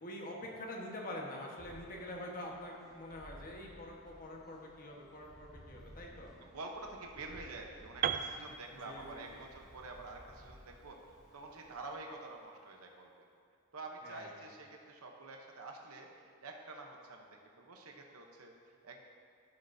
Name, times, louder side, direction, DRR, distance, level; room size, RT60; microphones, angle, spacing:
voice 1, 0.0-6.3 8.8-9.4 14.0-14.4, left 1 dB, 40° left, -1 dB, 1.3 m, -46 dB
sound 1, 1.6-11.9, equal, ahead, 2.4 m, -58 dB
voice 2, 6.4-11.0 11.3-13.3 13.7-17.3 17.6-19.0, right 3 dB, 70° right, 2 dB, 0.9 m, -48 dB
Piano, 8.0-11.9, right 9 dB, 40° right, 0.3 m, -40 dB
11.5 x 9.9 x 2.7 m, 2.2 s
head